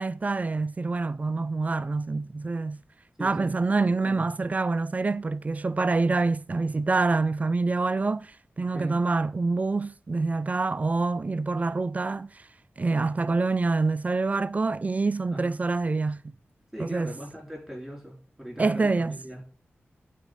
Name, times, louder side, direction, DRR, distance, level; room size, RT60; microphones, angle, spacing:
voice 1, 0.0-2.8 3.2-12.4 12.8-16.3 16.8-17.2 18.6-19.2, right 3 dB, 35° right, 0.4 m, -26 dB
voice 2, 3.2-3.5 3.8-4.3 8.7-9.0 15.3-15.6 16.7-19.5, equal, 5° right, 4.3 m, -40 dB
8.9 x 4.2 x 6.3 m
wide cardioid pair, 100°, 4 cm